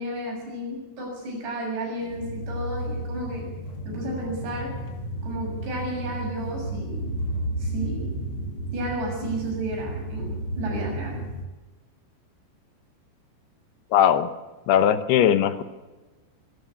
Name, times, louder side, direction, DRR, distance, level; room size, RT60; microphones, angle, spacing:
voice 1, 0.0-3.5 3.9-4.8 5.2-7.1 7.6-8.2 8.7-11.2, right 1 dB, 90° right, 0 dB, 9.1 m, -32 dB
sound 1, 2.0-11.5, right 1 dB, 45° left, 1.9 m, -32 dB
voice 2, 13.9-14.3 14.7-15.6, left 9 dB, 75° left, 12 dB, 2.9 m, -19 dB
23.5 x 13.0 x 8.4 m, 1.2 s
omnidirectional pair, 4.9 m